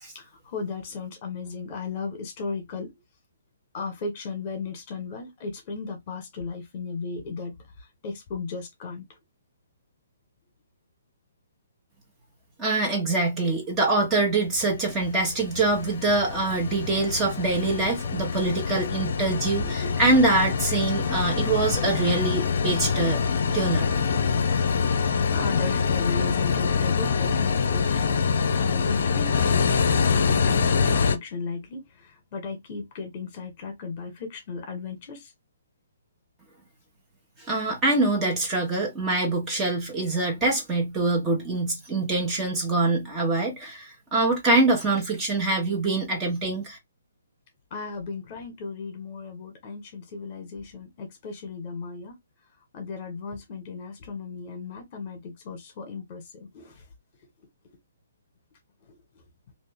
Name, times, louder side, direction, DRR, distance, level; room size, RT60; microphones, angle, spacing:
voice 1, 0.1-2.9 3.7-9.1 19.6-20.1 23.9-28.2 28.5-29.7 30.0-35.3 47.7-52.2 52.7-56.8 58.9-59.3, left 4 dB, 35° left, 1.5 m, -36 dB
voice 2, 12.6-23.2 23.5-23.9 37.4-46.8, right 2 dB, 15° right, 1.2 m, -24 dB
sound 1, 14.5-31.2, left 5 dB, 50° left, 0.5 m, -25 dB
3.2 x 2.7 x 3.5 m
figure-of-eight pair, 130°, 0 cm